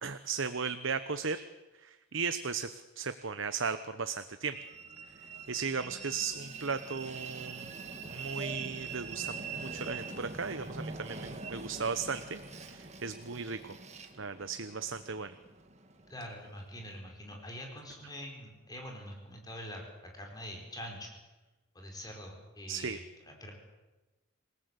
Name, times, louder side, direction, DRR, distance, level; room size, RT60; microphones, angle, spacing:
voice 1, 0.0-1.4 1.8-4.6 5.5-7.7 8.1-13.7 14.2-15.3 22.7-23.0, right 5 dB, 60° right, 10 dB, 1.0 m, -36 dB
Train, 4.5-17.0, right 4 dB, 30° right, 2.0 m, -44 dB
voice 2, 16.1-21.1 21.7-23.5, equal, 20° left, 1 dB, 4.5 m, -45 dB
27.5 x 18.0 x 8.2 m, 1.1 s
head